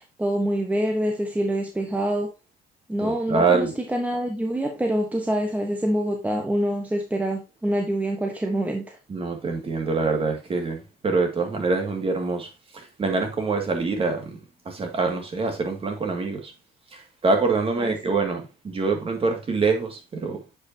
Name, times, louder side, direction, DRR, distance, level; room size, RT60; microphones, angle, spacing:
voice 1, 0.0-2.3 2.9-9.0 17.8-18.0, right 1 dB, 10° right, 1.2 m, -26 dB
voice 2, 3.0-3.7 9.1-14.4 14.7-16.5 16.9-20.4, right 4 dB, 35° right, 2.2 m, -25 dB
8.3 x 5.3 x 2.8 m
cardioid pair, 110°, 17 cm